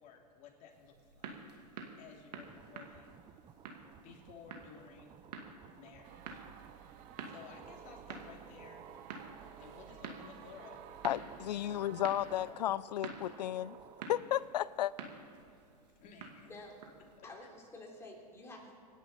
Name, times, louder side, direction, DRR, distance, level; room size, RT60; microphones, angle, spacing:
voice 1, 0.0-1.6 2.0-3.2 4.0-5.2 5.7-6.4 7.3-8.9 9.6-10.8 11.6-12.0 12.5-12.6 13.3-13.4 16.0-16.6 17.2-17.3, left 6 dB, 35° left, 0 dB, 3.1 m, -55 dB
sound 1, 0.7-17.2, right 5 dB, 75° right, 2.4 m, -50 dB
sound 2, 2.3-14.1, right 8 dB, 25° right, 0.6 m, -56 dB
sound 3, 6.0-12.5, right 10 dB, 40° right, 1.1 m, -55 dB
voice 2, 11.0-13.8 14.1-14.9, left 12 dB, 80° left, 20 dB, 0.5 m, -34 dB
voice 3, 17.2-18.8, left 2 dB, 10° left, -1 dB, 3.5 m, -50 dB
26.0 x 11.0 x 4.4 m, 2.7 s
hypercardioid pair, 125°, 21 cm